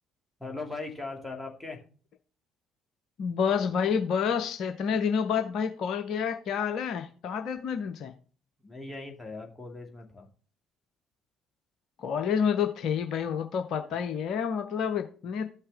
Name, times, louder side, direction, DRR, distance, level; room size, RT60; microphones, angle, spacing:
voice 1, 0.4-1.8 8.6-10.3, left 3 dB, 10° left, 1 dB, 2.3 m, -39 dB
voice 2, 3.2-8.1 12.0-15.4, left 7 dB, 55° left, 7 dB, 0.6 m, -29 dB
13.5 x 5.7 x 3.5 m, 0.41 s
figure-of-eight pair, 50°, 0 cm